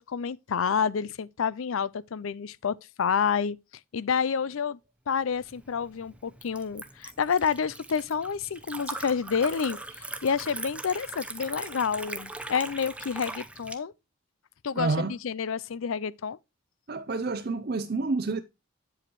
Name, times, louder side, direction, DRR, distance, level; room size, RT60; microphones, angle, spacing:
voice 1, 0.0-3.6 3.9-4.8 5.1-13.9 14.6-16.4, left 6 dB, 80° left, 0.5 m, -29 dB
Liquid, 5.4-13.8, right 2 dB, 5° right, 0.7 m, -40 dB
voice 2, 14.7-15.1 16.9-18.4, right 3 dB, 50° right, 0.5 m, -28 dB
8.7 x 7.8 x 2.9 m
head